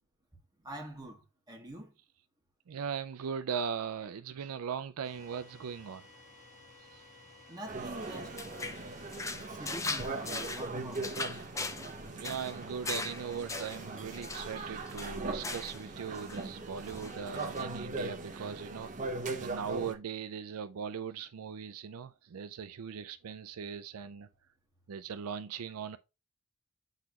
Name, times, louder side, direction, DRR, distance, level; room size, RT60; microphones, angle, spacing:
voice 1, 0.6-1.9 7.5-8.4 9.5-11.3, right 1 dB, 20° right, 1.8 m, -45 dB
voice 2, 2.7-6.1 6.9-7.0 12.1-24.3 24.9-26.0, right 7 dB, 75° right, 0.4 m, -39 dB
sound 1, 5.0-10.6, left 2 dB, 30° left, 1.5 m, -56 dB
sound 2, 7.7-19.9, right 3 dB, 35° right, 0.9 m, -40 dB
sound 3, 8.0-15.9 16.1-16.5 16.9-17.6, left 3 dB, 15° left, 0.5 m, -40 dB
8.0 x 4.1 x 2.9 m
head